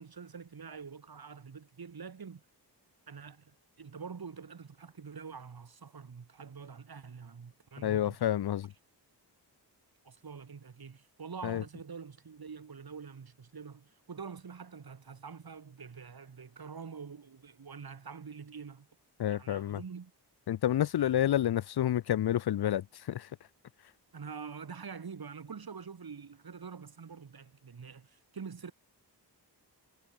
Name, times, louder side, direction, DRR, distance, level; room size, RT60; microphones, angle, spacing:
voice 1, 0.0-2.4 3.1-8.2 10.0-18.9 19.3-20.1 24.1-28.7, right 6 dB, 60° right, 3.4 m, -46 dB
voice 2, 7.8-8.7 11.4-11.6 19.2-19.8 20.5-23.3, left 11 dB, 65° left, 0.6 m, -29 dB
wide cardioid pair, 95°, 42 cm